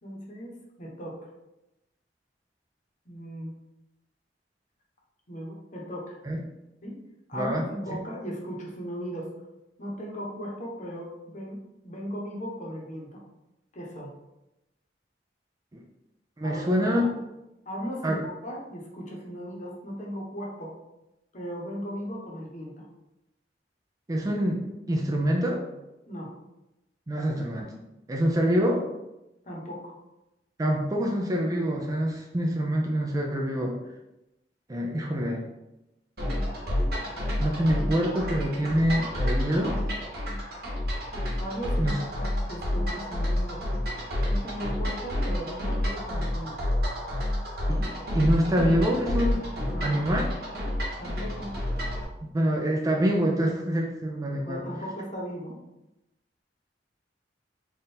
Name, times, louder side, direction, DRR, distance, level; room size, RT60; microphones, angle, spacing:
voice 1, 0.0-0.5 0.8-1.2 3.1-3.5 5.3-6.2 6.8-7.0 7.3-9.3 9.8-13.2 13.7-14.1 16.4-17.1 17.6-20.7 21.3-22.9 26.1-26.3 29.5-29.9 41.4-43.6 44.3-46.6 49.6-50.0 51.0-51.5 54.4-55.5, equal, 45° left, -2 dB, 0.9 m, -37 dB
voice 2, 7.3-8.0 16.4-17.0 18.0-18.2 24.1-25.7 27.1-27.7 28.1-28.9 30.6-33.8 34.7-35.5 37.4-39.7 41.8-42.0 47.7-49.5 49.8-50.2 52.2-54.6, equal, 20° right, 1 dB, 0.4 m, -26 dB
sound 1, 36.2-52.0, left 1 dB, 60° right, 1.4 m, -29 dB
3.5 x 2.5 x 4.3 m, 0.93 s
head